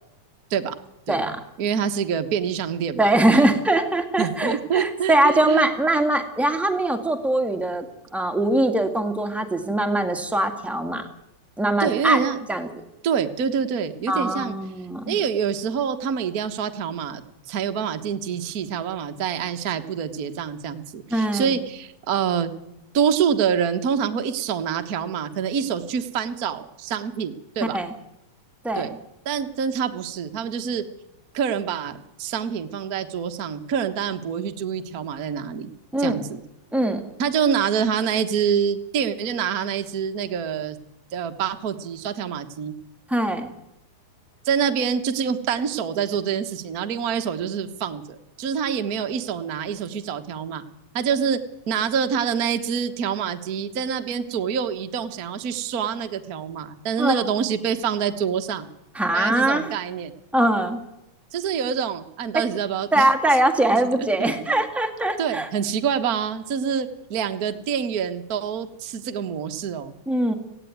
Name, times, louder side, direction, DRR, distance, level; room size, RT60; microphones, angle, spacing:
voice 1, 1.6-3.1 4.2-5.7 11.8-12.4 13.0-14.5 15.1-22.5 22.9-27.8 28.7-28.9 29.2-30.8 31.3-35.7 36.0-36.4 37.2-40.8 41.1-42.7 44.4-50.6 50.9-51.4 51.7-58.7 59.1-60.1 61.3-63.1 64.0-64.6 65.2-69.9, right 7 dB, 50° right, 7 dB, 1.1 m, -26 dB
voice 2, 3.0-7.8 8.1-11.0 11.6-12.2 12.5-12.7 14.1-15.2 21.1-21.5 27.7-27.9 28.6-28.9 35.9-36.2 36.7-37.0 43.1-43.5 57.0-57.3 58.9-59.7 60.3-60.8 62.9-65.5 70.1-70.3, right 1 dB, ahead, 5 dB, 0.9 m, -22 dB
17.5 x 16.5 x 9.4 m, 0.88 s
omnidirectional pair, 3.6 m